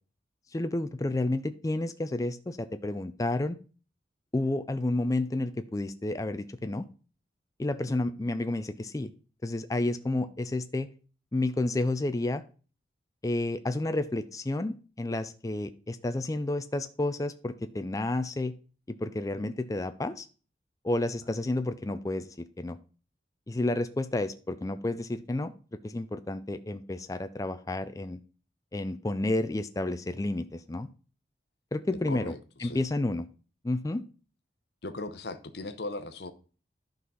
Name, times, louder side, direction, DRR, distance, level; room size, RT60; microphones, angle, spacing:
voice 1, 0.5-3.6 4.3-6.9 7.6-9.1 9.4-10.9 11.3-12.4 13.2-18.5 18.9-20.3 20.8-22.8 23.5-25.5 25.8-28.2 28.7-30.9 31.7-32.3 32.6-33.3 33.6-34.0, left 2 dB, 20° left, 0.4 m, -30 dB
voice 2, 32.1-32.8 34.8-36.3, left 2 dB, 65° left, 0.8 m, -38 dB
11.0 x 4.0 x 5.5 m
head